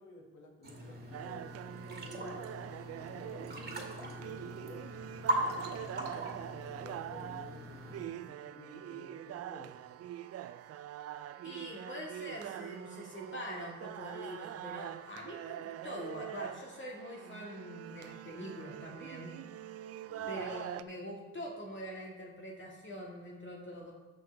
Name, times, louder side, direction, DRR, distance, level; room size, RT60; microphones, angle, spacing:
voice 1, 0.0-1.4 1.9-2.5 3.0-4.9 5.3-9.8 20.0-20.4, left 2 dB, 75° left, 1 dB, 2.0 m, -52 dB
sound 1, 0.6-8.0, right 1 dB, 35° right, 2.1 m, -40 dB
sound 2, 1.1-20.8, right 11 dB, 55° right, 0.4 m, -44 dB
voice 2, 11.4-19.4 20.3-23.9, equal, 40° left, -2 dB, 1.9 m, -44 dB
13.0 x 5.9 x 3.4 m, 1.3 s
cardioid pair, 90°, 30 cm